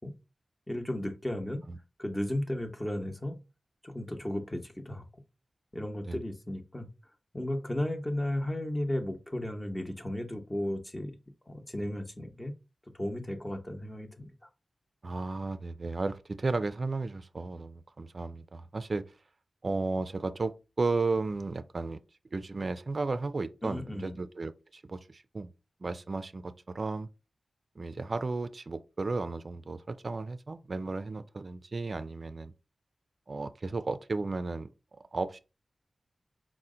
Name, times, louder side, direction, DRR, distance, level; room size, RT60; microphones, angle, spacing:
voice 1, 0.7-1.6 2.0-3.4 3.8-5.0 5.7-6.9 7.3-11.2 11.5-12.5 12.9-14.3 23.6-24.1, left 1 dB, 20° left, 0.8 m, -34 dB
voice 2, 15.0-19.0 19.6-22.0 22.3-25.5 25.8-27.1 27.8-32.5 33.3-35.4, right 3 dB, 55° right, 0.4 m, -34 dB
4.3 x 2.1 x 3.7 m
cardioid pair, 40°, 0 cm